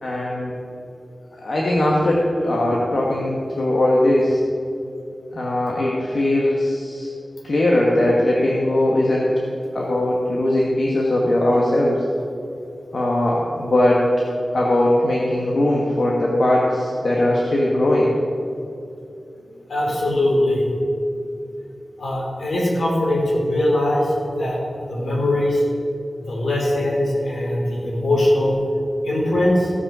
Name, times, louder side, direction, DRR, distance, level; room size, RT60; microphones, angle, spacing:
voice 1, 0.0-0.5 1.4-4.4 5.3-7.1 7.4-9.3 9.7-12.0 12.9-14.1 14.5-18.1, left 1 dB, 65° left, -4 dB, 1.4 m, -19 dB
voice 2, 19.7-20.7 22.0-25.6 26.3-28.5 29.0-29.7, left 1 dB, 80° left, -3 dB, 3.2 m, -21 dB
15.5 x 5.6 x 6.1 m, 2.6 s
wide cardioid pair, 105°, 0 cm